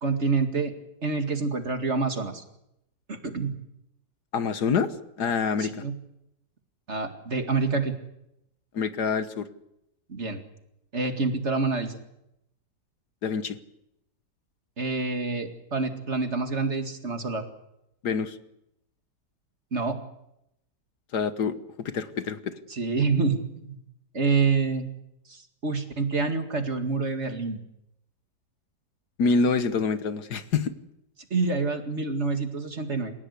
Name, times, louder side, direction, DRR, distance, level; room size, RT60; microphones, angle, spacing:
voice 1, 0.0-0.7 1.0-2.4 3.1-3.5 5.6-5.9 6.9-8.0 10.1-10.4 10.9-12.0 14.8-17.4 19.7-20.0 22.7-23.8 24.1-24.9 25.3-27.6 31.3-33.1, right 4 dB, 40° right, 6 dB, 2.4 m, -27 dB
voice 2, 4.3-5.7 8.7-9.5 13.2-13.6 18.0-18.4 21.1-22.5 29.2-30.7, left 5 dB, 70° left, 11 dB, 1.7 m, -26 dB
28.5 x 16.5 x 8.3 m, 0.82 s
omnidirectional pair, 1.8 m